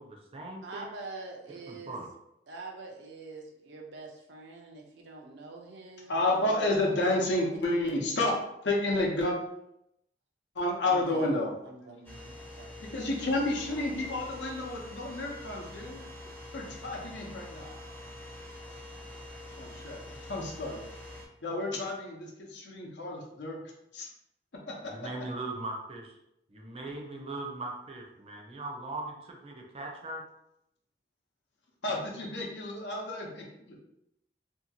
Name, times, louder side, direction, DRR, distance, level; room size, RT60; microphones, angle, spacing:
voice 1, 0.0-0.8 1.7-2.1 24.8-26.1 26.5-30.2, right 2 dB, 35° right, 1 dB, 0.5 m, -39 dB
voice 2, 0.6-2.0 2.5-6.1 6.4-7.8 10.9-12.9, right 3 dB, 80° right, 1 dB, 0.6 m, -46 dB
voice 3, 6.1-8.3 8.6-9.4 10.5-11.5 12.9-16.0 16.5-17.8 19.6-20.8 21.4-23.6 23.9-24.1 24.7-24.9 31.8-33.8, left 2 dB, 85° left, -1 dB, 0.7 m, -31 dB
sound 1, 12.0-21.3, left 1 dB, 10° left, 0.5 m, -45 dB
2.7 x 2.3 x 2.7 m, 0.81 s
head